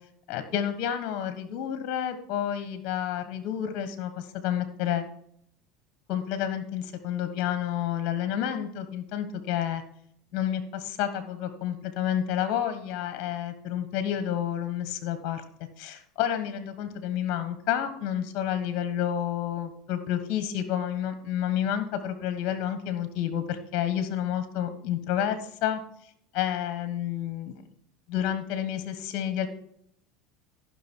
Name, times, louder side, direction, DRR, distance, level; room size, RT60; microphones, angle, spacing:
voice 1, 0.3-5.0 6.1-9.8 10.3-15.4 15.8-25.8 26.3-27.5 28.1-29.5, left 10 dB, 55° left, 10 dB, 1.4 m, -30 dB
14.0 x 6.1 x 4.6 m, 0.68 s
hypercardioid pair, 95°, 0 cm